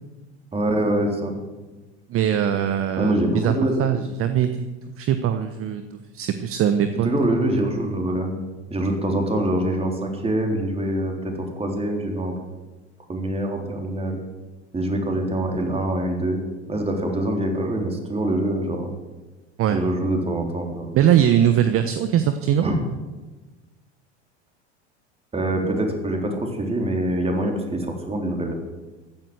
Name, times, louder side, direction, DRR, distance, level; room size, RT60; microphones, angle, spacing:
voice 1, 0.5-1.3 3.0-3.8 7.0-8.4 8.7-12.3 13.1-14.2 14.7-16.4 16.7-18.9 19.7-20.9 22.6-22.8 25.3-28.5, right 1 dB, 15° right, 2 dB, 3.8 m, -24 dB
voice 2, 2.1-3.5 3.8-4.7 5.0-5.8 6.1-7.1 19.6-19.8 20.9-22.7, right 10 dB, 40° right, 9 dB, 1.1 m, -21 dB
15.0 x 9.4 x 7.9 m, 1.2 s
hypercardioid pair, 90°, 34 cm